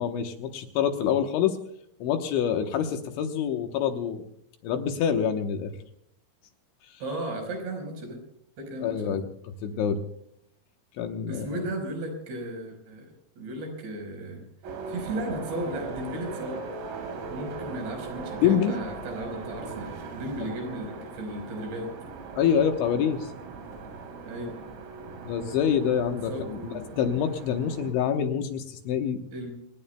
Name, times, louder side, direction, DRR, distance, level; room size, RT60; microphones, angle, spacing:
voice 1, 0.0-1.6 2.0-4.2 4.6-5.7 8.8-9.2 9.6-10.0 11.0-11.6 18.4-18.8 22.4-23.3 25.2-29.2, left 8 dB, 75° left, 5 dB, 3.2 m, -26 dB
voice 2, 7.0-8.2 8.6-9.2 11.3-14.4 14.9-16.7 17.3-21.9 24.3-24.6 26.3-27.0 29.3-29.5, right 1 dB, 55° right, 3 dB, 6.4 m, -35 dB
sound 1, 14.6-27.9, right 4 dB, 85° right, 5.9 m, -39 dB
27.0 x 19.0 x 2.2 m, 0.72 s
omnidirectional pair, 5.8 m